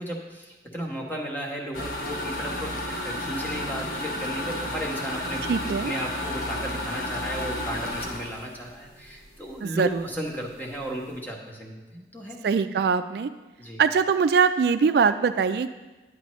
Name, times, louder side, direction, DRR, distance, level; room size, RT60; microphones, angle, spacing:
voice 1, 0.0-12.4 13.6-13.8, right 1 dB, 10° left, -1 dB, 1.2 m, -35 dB
sound 1, 1.7-9.5 9.9-10.0 10.4-10.5 10.7-11.1, left 1 dB, 50° left, 1.0 m, -32 dB
voice 2, 5.5-5.9 9.6-10.0 12.4-13.3 13.8-15.7, right 5 dB, 65° right, 10 dB, 0.3 m, -22 dB
9.8 x 9.7 x 3.1 m, 1.2 s
head